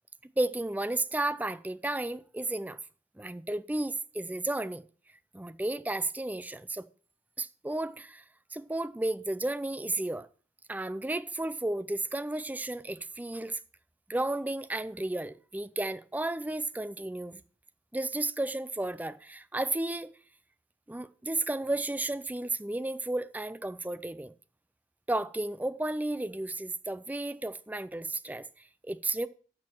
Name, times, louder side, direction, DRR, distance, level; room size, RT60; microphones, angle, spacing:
voice 1, 0.2-2.8 3.2-4.8 5.3-6.8 7.4-8.2 8.5-10.3 10.7-13.6 14.1-17.4 17.9-20.1 20.9-24.3 25.1-29.3, right 2 dB, 10° right, 0.4 m, -33 dB
12.0 x 6.7 x 4.4 m
head